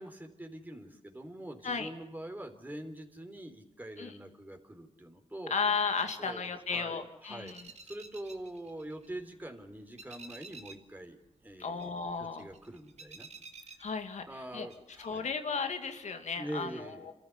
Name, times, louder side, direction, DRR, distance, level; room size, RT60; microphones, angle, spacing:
voice 1, 0.0-5.5 6.2-7.6 7.8-13.3 14.2-15.3 16.4-17.1, right 1 dB, 15° right, 4 dB, 3.6 m, -44 dB
voice 2, 5.5-7.7 11.6-12.4 13.8-14.2 14.5-14.7 15.0-16.7 17.0-17.1, left 5 dB, 80° left, 6 dB, 2.4 m, -34 dB
sound 1, 7.5-9.5 9.7-11.0 11.2-14.4 14.7-15.3, right 4 dB, 70° right, 2.3 m, -51 dB
28.0 x 14.0 x 9.7 m, 0.91 s
cardioid pair, 70°, 12 cm